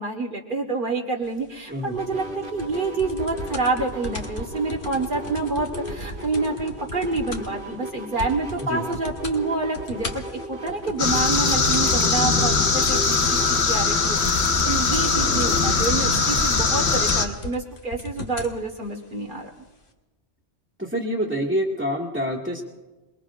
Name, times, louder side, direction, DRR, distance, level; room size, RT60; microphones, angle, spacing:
voice 1, 0.0-13.0 13.3-19.5, right 3 dB, 50° right, -1 dB, 1.5 m, -28 dB
voice 2, 1.7-2.0 8.6-8.8 20.8-22.6, equal, 10° right, -6 dB, 1.9 m, -26 dB
sound 1, 1.9-13.6, equal, 85° right, 4.2 m, -36 dB
sound 2, 2.6-7.6 7.9-8.0 8.2-8.6 8.9-9.4 9.7-18.6 19.4-19.5, left 2 dB, 55° left, 1.4 m, -36 dB
sound 3, 11.0-17.2, left 4 dB, 75° left, 1.5 m, -21 dB
27.5 x 21.0 x 2.5 m, 1.1 s
omnidirectional pair, 1.1 m